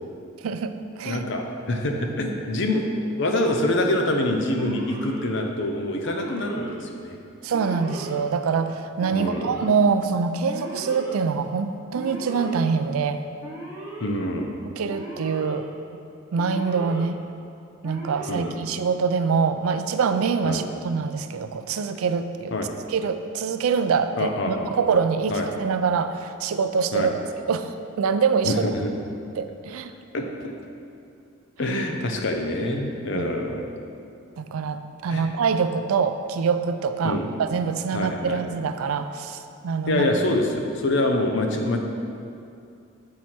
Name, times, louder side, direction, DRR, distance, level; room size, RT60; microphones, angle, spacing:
voice 1, 0.4-1.2 7.4-13.2 14.7-15.7 16.3-17.2 17.8-22.5 22.9-27.1 27.5-28.5 29.4-29.9 33.1-33.3 34.4-40.1, right 5 dB, 85° right, 10 dB, 0.4 m, -25 dB
voice 2, 1.0-7.2 9.1-9.5 14.0-14.6 18.3-18.5 20.4-20.7 22.5-22.8 24.2-24.7 25.3-25.5 26.9-27.1 28.4-28.9 30.1-30.5 31.6-33.7 35.1-35.3 37.0-37.3 37.9-38.4 39.9-41.8, left 1 dB, 60° left, 3 dB, 0.7 m, -25 dB
Alarm, 4.6-5.2 6.0-6.7 7.5-8.2 9.0-9.6 10.5-11.1 11.9-12.6 13.4-14.1 14.9-15.5 16.4-17.0 17.8-18.5, right 1 dB, 10° right, 0.9 m, -38 dB
7.6 x 4.5 x 4.3 m, 2.5 s
head